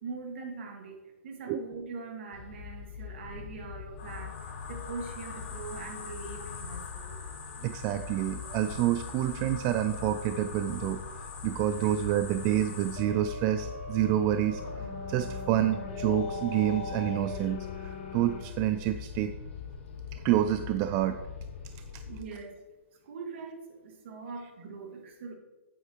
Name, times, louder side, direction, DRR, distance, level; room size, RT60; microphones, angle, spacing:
voice 1, 0.0-7.2 22.1-22.6 23.0-25.3, right 4 dB, 60° right, 3 dB, 1.9 m, -42 dB
sound 1, 2.3-22.2, left 6 dB, 65° left, 1.4 m, -43 dB
sound 2, 4.0-18.4, left 4 dB, 45° left, 2.4 m, -42 dB
voice 2, 7.6-14.6 15.1-19.3 20.1-21.2, right 12 dB, 30° right, 9 dB, 0.3 m, -28 dB
9.1 x 8.1 x 3.0 m, 1.1 s
hypercardioid pair, 150°, 7 cm